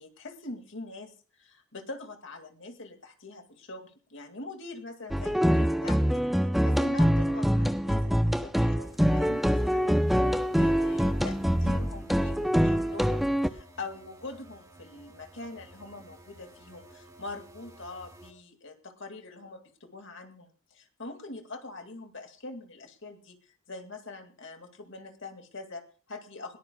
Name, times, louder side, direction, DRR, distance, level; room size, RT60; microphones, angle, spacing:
voice 1, 0.0-9.9 10.6-26.6, left 2 dB, 60° left, 6 dB, 2.3 m, -43 dB
sound 1, 5.1-13.5, equal, ahead, 0.6 m, -25 dB
sound 2, 8.8-18.3, right 1 dB, 15° right, 2.3 m, -54 dB
21.0 x 18.5 x 2.3 m, 0.38 s
head